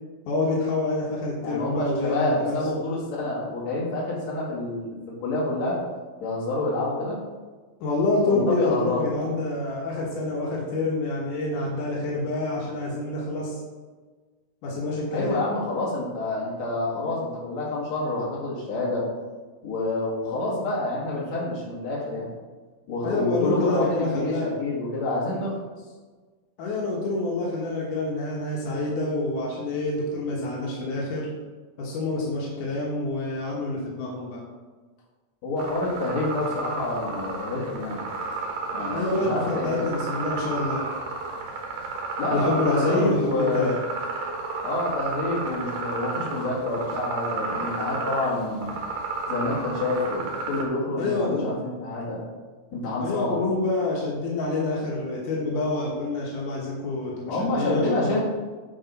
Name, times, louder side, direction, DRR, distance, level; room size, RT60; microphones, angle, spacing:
voice 1, 0.3-2.6 7.8-13.6 14.6-15.4 23.0-24.5 26.6-31.3 31.8-34.4 38.9-40.9 42.3-43.8 51.0-51.5 53.0-58.2, left 2 dB, 85° left, -3 dB, 2.7 m, -27 dB
voice 2, 1.4-5.8 6.2-7.2 8.3-9.1 15.1-19.1 19.6-22.3 22.9-25.6 35.4-38.0 38.7-39.9 42.2-43.7 44.6-48.8 49.3-52.2 52.7-53.4 57.3-58.2, left 2 dB, 60° left, -5 dB, 3.1 m, -28 dB
sound 1, 35.6-50.6, right 3 dB, 65° right, 2.5 m, -32 dB
10.0 x 4.6 x 4.0 m, 1.4 s
omnidirectional pair, 3.5 m